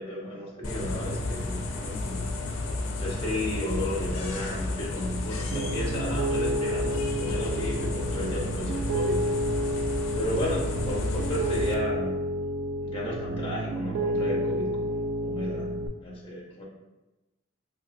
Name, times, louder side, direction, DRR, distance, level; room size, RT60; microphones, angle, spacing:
voice 1, 0.0-2.2 3.0-9.2 10.2-12.3 12.8-15.7 16.0-16.6, left 1 dB, 25° left, -4 dB, 0.7 m, -33 dB
sound 1, 0.6-11.7, left 2 dB, 80° left, 0.4 m, -32 dB
Piano, 5.5-15.9, equal, 80° right, 0.3 m, -30 dB
2.9 x 2.8 x 2.5 m, 1.1 s
head